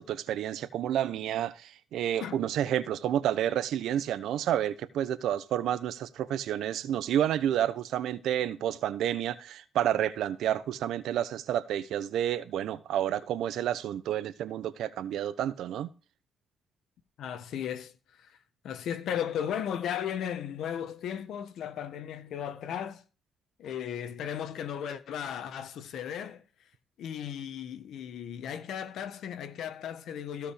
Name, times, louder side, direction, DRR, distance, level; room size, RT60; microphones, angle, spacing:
voice 1, 0.0-15.9, right 11 dB, 75° right, 1.0 m, -30 dB
voice 2, 17.2-17.9 18.2-18.4 18.6-23.0 23.6-26.4 27.0-30.5, left 9 dB, 75° left, 1.5 m, -35 dB
15.5 x 5.4 x 5.1 m
cardioid pair, 85°, 0 cm